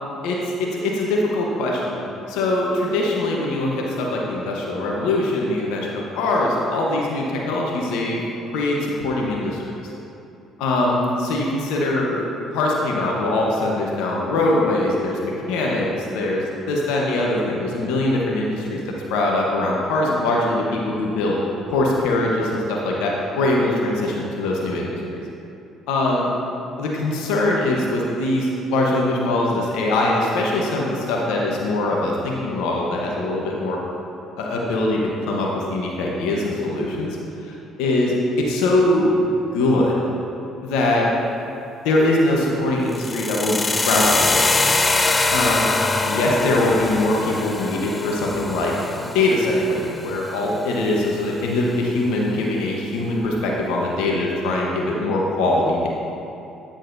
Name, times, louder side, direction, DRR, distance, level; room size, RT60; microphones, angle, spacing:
voice 1, 0.2-2.0 2.3-8.2 8.5-9.9 10.6-18.8 19.1-21.4 21.7-25.2 25.9-26.3 26.8-33.8 34.4-37.2 37.4-37.5 37.8-39.3 39.5-40.1 40.6-41.1 41.8-44.5 45.3-45.7 46.0-55.9, left 2 dB, 80° left, -2 dB, 0.9 m, -22 dB
sound 1, 42.9-50.9, left 3 dB, 25° left, 0.4 m, -23 dB
9.5 x 6.4 x 2.6 m, 2.8 s
hypercardioid pair, 65°, 0 cm